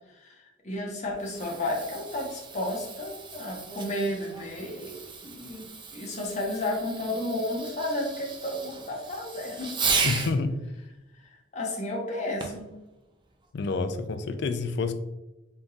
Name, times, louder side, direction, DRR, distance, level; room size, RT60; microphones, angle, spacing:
voice 1, 0.2-9.7 11.5-12.7, left 1 dB, 40° left, -1 dB, 1.0 m, -32 dB
Fireworks, 1.0-10.4 12.4-12.7 13.4-13.5, right 5 dB, 25° right, 0.5 m, -35 dB
voice 2, 10.0-10.6 13.5-14.9, left 3 dB, 60° left, 9 dB, 0.4 m, -28 dB
4.0 x 3.7 x 2.4 m, 1.0 s
head